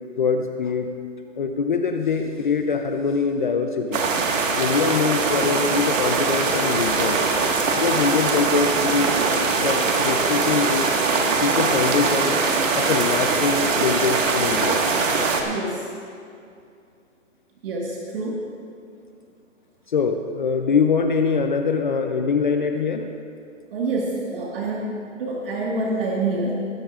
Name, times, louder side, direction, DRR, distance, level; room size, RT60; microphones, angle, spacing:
voice 1, 0.2-0.9 1.4-4.1 4.5-7.2 7.8-9.1 9.6-10.9 11.4-12.4 12.7-14.8 19.9-23.1, left 5 dB, 40° left, 5 dB, 0.5 m, -23 dB
sound 1, 3.9-15.4, right 4 dB, 70° right, 1.7 m, -22 dB
voice 2, 15.4-15.9 17.6-18.4 23.7-26.6, right 2 dB, 45° right, -3 dB, 1.5 m, -27 dB
19.0 x 13.0 x 2.4 m, 2.4 s
hypercardioid pair, 170°, 39 cm